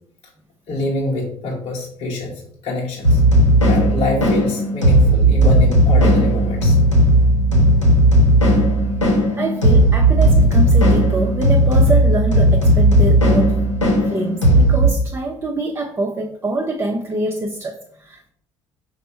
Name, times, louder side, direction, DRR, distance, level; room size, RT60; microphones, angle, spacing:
voice 1, 0.7-3.2 3.6-6.8, left 2 dB, 40° left, -2 dB, 0.9 m, -25 dB
sound 1, 3.0-14.9, right 1 dB, 85° left, 0.9 m, -14 dB
voice 2, 9.3-13.6 14.1-18.3, right 2 dB, 15° right, 1 dB, 0.5 m, -24 dB
5.1 x 2.1 x 4.3 m, 0.65 s
figure-of-eight pair, 55°, 15 cm